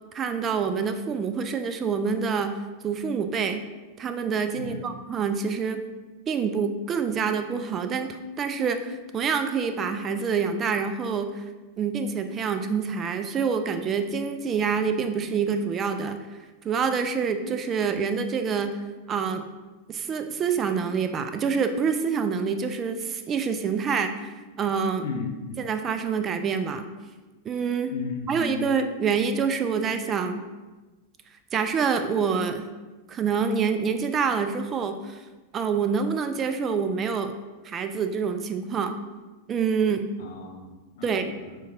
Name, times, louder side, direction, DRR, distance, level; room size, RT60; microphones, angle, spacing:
voice 1, 0.1-2.6 2.8-3.7 4.0-5.8 6.3-11.4 11.8-16.2 16.6-18.8 19.1-19.4 19.9-25.0 25.6-26.9 27.5-27.9 28.3-30.4 31.5-32.7 33.1-35.2 35.5-37.3 37.6-39.0 39.5-40.1 41.0-41.3, right 6 dB, 25° right, 8 dB, 0.3 m, -26 dB
voice 2, 25.0-25.7 27.9-28.7 40.2-41.6, left 4 dB, 55° left, 2 dB, 0.6 m, -35 dB
6.2 x 2.2 x 2.6 m, 1.2 s
figure-of-eight pair, 90°, 0 cm